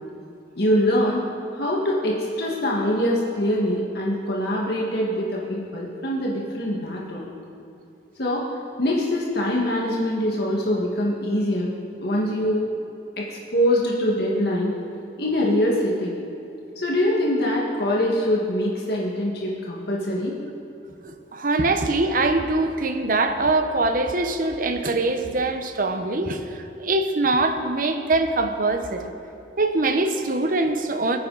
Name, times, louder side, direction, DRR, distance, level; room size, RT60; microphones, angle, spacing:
voice 1, 0.6-1.2 1.5-7.2 8.2-8.5 8.8-11.7 12.0-12.7 13.2-14.7 15.2-16.1 16.8-20.4, left 1 dB, 60° left, -3 dB, 1.8 m, -23 dB
voice 2, 21.0-29.1 29.6-31.2, right 2 dB, 50° right, 7 dB, 1.0 m, -23 dB
22.0 x 9.5 x 4.1 m, 2.8 s
head